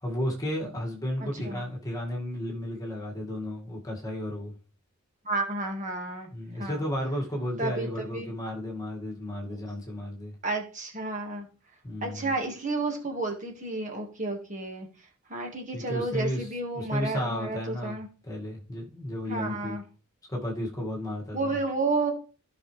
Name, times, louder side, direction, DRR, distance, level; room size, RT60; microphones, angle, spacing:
voice 1, 0.0-4.5 6.3-10.4 11.8-12.3 15.7-16.5 16.7-19.8 20.3-21.5, left 1 dB, 15° left, -1 dB, 2.2 m, -33 dB
voice 2, 1.2-1.6 5.2-6.3 6.6-6.8 7.6-8.3 9.5-9.6 10.4-11.5 12.0-14.9 15.3-18.1 19.3-19.8 21.3-22.1, right 3 dB, 35° right, 1 dB, 1.9 m, -31 dB
14.5 x 5.8 x 3.4 m, 0.37 s
head